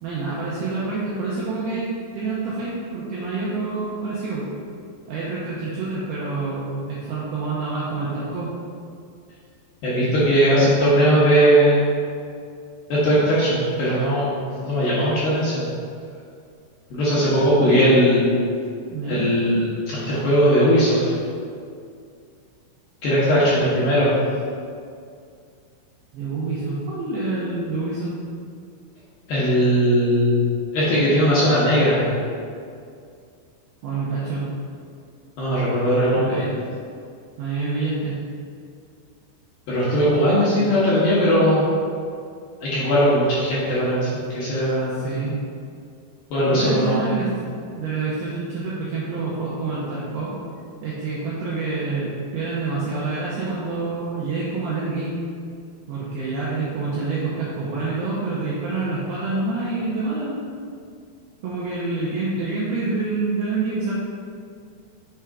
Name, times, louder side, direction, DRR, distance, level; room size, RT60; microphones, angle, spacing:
voice 1, 0.0-1.9 2.1-4.5 5.1-8.5 17.6-18.0 18.9-19.6 23.7-24.4 26.1-28.1 33.8-34.5 36.2-36.6 37.4-38.2 40.6-40.7 44.9-45.4 46.5-50.4 50.8-55.2 55.9-60.5 61.4-63.9, right 3 dB, 80° right, -7 dB, 2.2 m, -27 dB
voice 2, 9.8-11.8 12.9-15.7 16.9-18.2 19.1-21.2 23.0-24.1 29.3-30.4 30.7-32.0 35.4-36.4 39.7-41.7 42.6-45.1 46.3-47.1, equal, 70° left, -9 dB, 2.4 m, -19 dB
7.2 x 3.4 x 4.8 m, 2.3 s
omnidirectional pair, 5.4 m